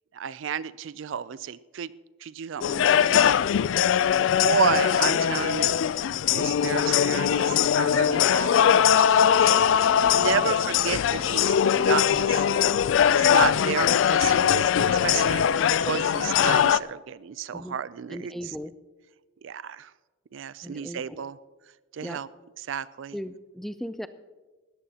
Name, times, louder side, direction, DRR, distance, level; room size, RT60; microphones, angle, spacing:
voice 1, 0.1-1.9 2.2-3.3 4.1-5.8 6.3-12.5 13.1-15.4 15.8-18.3 19.4-19.9 20.3-21.4 21.9-22.3 22.7-23.2, right 7 dB, 70° right, 18 dB, 0.4 m, -31 dB
sound 1, 2.6-16.8, left 9 dB, 70° left, 0.3 m, -21 dB
voice 2, 4.0-5.5 10.3-10.5 17.5-17.8 18.1-18.7 20.6-21.2 22.0-22.2 23.1-24.1, equal, ahead, 12 dB, 0.4 m, -38 dB
19.0 x 14.0 x 2.9 m, 1.3 s
head